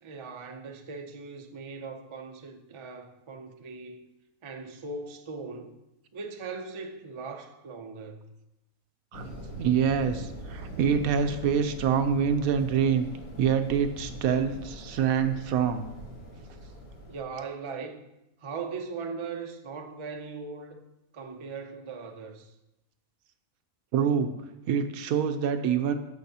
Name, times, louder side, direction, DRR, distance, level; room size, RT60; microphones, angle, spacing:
voice 1, 0.0-4.1 4.4-5.7 6.1-8.3 17.1-18.1 18.4-20.8 21.1-22.5, right 4 dB, 45° right, 0.4 m, -39 dB
sound 1, 9.1-17.2, equal, 85° left, 2.0 m, -42 dB
voice 2, 9.6-13.1 13.4-15.9 23.9-24.3 24.7-25.9, right 7 dB, 85° right, 1.1 m, -25 dB
13.0 x 4.8 x 2.8 m
omnidirectional pair, 1.5 m